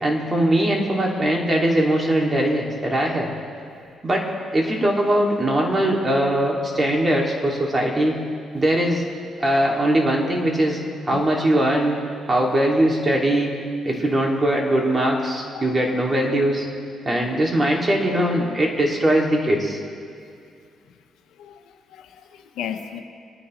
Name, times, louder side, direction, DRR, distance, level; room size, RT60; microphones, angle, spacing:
voice 1, 0.0-3.3 4.0-8.2 8.5-9.0 9.4-10.8 11.1-12.0 12.3-13.5 13.8-16.6 17.1-19.8, right 1 dB, 25° right, -1 dB, 2.5 m, -21 dB
voice 2, 9.4-9.7 11.1-11.3 15.5-15.9 21.3-23.0, left 8 dB, 90° left, 5 dB, 1.1 m, -36 dB
25.0 x 9.9 x 3.2 m, 2.3 s
cardioid pair, 90°, 0 cm